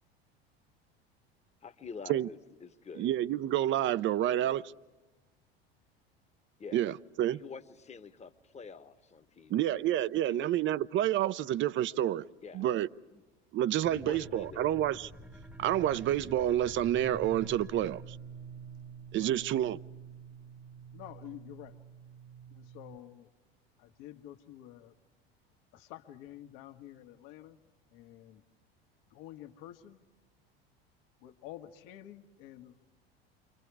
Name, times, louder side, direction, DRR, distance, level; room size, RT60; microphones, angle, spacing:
voice 1, 1.6-3.1 6.6-6.9 7.3-9.8 10.1-10.5 10.9-11.0 12.4-12.7 13.1-13.2 13.9-14.7, left 5 dB, 20° left, 1.2 m, -47 dB
voice 2, 3.0-4.7 6.7-7.4 9.5-12.2 12.5-12.9 13.5-15.1 15.6-18.2 19.1-19.8, right 12 dB, 40° right, 0.7 m, -29 dB
sound 1, 13.8-23.0, right 3 dB, 5° right, 0.8 m, -48 dB
voice 3, 20.9-21.8 22.5-23.3 23.8-24.9 25.7-27.6 27.9-28.4 29.1-30.0 31.2-32.8, left 13 dB, 65° left, 1.6 m, -49 dB
29.5 x 24.5 x 4.8 m
hypercardioid pair, 80°, 31 cm